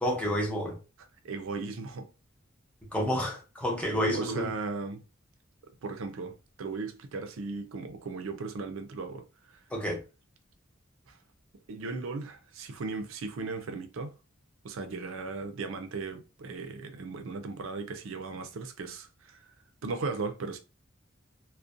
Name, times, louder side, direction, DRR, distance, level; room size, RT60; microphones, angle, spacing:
voice 1, 0.0-0.8 2.9-4.5 9.7-10.0, equal, 5° left, 0.6 m, -29 dB
voice 2, 1.0-2.1 4.1-5.0 5.8-9.6 11.1-11.2 11.7-14.1 14.6-19.5 19.8-20.6, right 4 dB, 80° right, 0.5 m, -37 dB
2.4 x 2.1 x 2.5 m
head